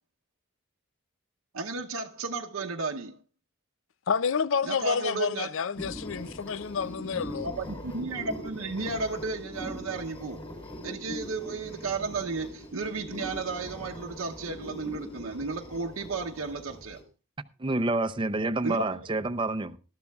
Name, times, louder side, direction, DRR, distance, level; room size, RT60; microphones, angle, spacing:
voice 1, 1.5-3.2 4.6-5.5 7.4-10.4 10.8-17.0 18.6-19.1, right 4 dB, 85° right, 0.8 m, -33 dB
voice 2, 4.1-7.5, left 6 dB, 65° left, 0.5 m, -29 dB
sound 1, 5.7-17.0, equal, 25° left, 3.9 m, -41 dB
voice 3, 17.6-19.8, right 2 dB, 25° right, 0.6 m, -28 dB
20.0 x 12.0 x 2.3 m
head